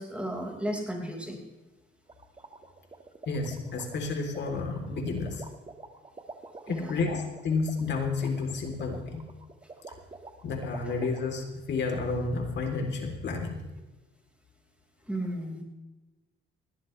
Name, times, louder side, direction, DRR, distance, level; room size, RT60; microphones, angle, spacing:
voice 1, 0.0-1.4 6.7-7.0 15.0-15.6, right 1 dB, 5° right, 0 dB, 5.1 m, -34 dB
sound 1, 2.1-11.2, right 3 dB, 25° right, 1.8 m, -47 dB
voice 2, 3.3-5.4 6.7-9.3 10.4-13.6, left 4 dB, 65° left, 2 dB, 3.5 m, -31 dB
20.5 x 17.0 x 3.3 m, 1.1 s
cardioid pair, 90°, 20 cm